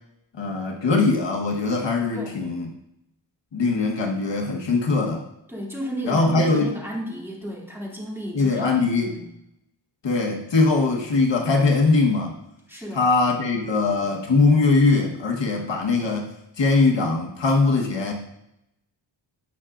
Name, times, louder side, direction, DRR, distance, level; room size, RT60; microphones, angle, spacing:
voice 1, 0.4-2.7 3.5-5.2 6.0-6.7 8.3-9.2 10.0-12.3 12.9-16.3 16.6-18.1, left 3 dB, 70° left, 1 dB, 1.3 m, -21 dB
voice 2, 5.5-9.3 12.7-13.1, equal, 5° right, -5 dB, 2.6 m, -33 dB
16.5 x 5.8 x 2.5 m, 0.84 s
wide cardioid pair, 145°, 45 cm